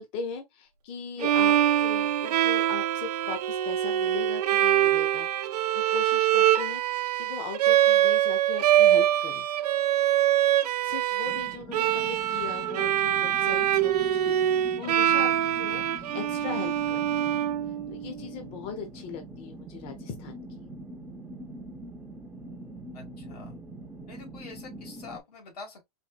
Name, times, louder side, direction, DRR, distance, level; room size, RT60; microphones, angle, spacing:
voice 1, 0.0-9.5 9.7-9.9 10.8-17.4 17.9-20.4, left 5 dB, 30° left, 0.7 m, -39 dB
Bowed string instrument, 1.2-18.1, right 12 dB, 85° right, 0.6 m, -24 dB
Bowed string instrument 2, 1.3-6.1, right 11 dB, 60° right, 0.9 m, -38 dB
sound 1, 11.2-25.2, right 1 dB, 5° right, 0.5 m, -44 dB
voice 2, 22.9-23.5 24.1-25.8, left 4 dB, 85° left, 2.0 m, -45 dB
4.2 x 2.6 x 2.4 m
hypercardioid pair, 150°, 20 cm